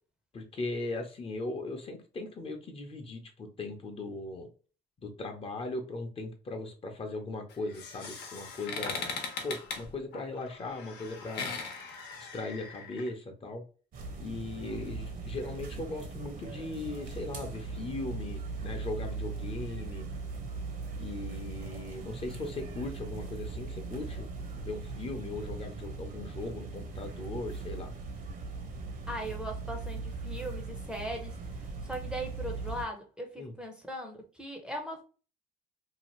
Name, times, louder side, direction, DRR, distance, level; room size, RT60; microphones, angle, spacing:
voice 1, 0.3-4.5 5.0-11.5 12.2-13.6 14.2-20.0 21.0-27.9 33.4-33.5, left 2 dB, 35° left, 5 dB, 0.7 m, -38 dB
sound 1, 7.5-13.1, left 4 dB, 75° left, 0.9 m, -40 dB
sound 2, 13.9-32.8, right 4 dB, 55° right, 0.8 m, -39 dB
voice 2, 29.1-35.0, right 1 dB, 5° right, 2 dB, 0.6 m, -39 dB
2.8 x 2.4 x 3.0 m, 0.37 s
cardioid pair, 110°, 17 cm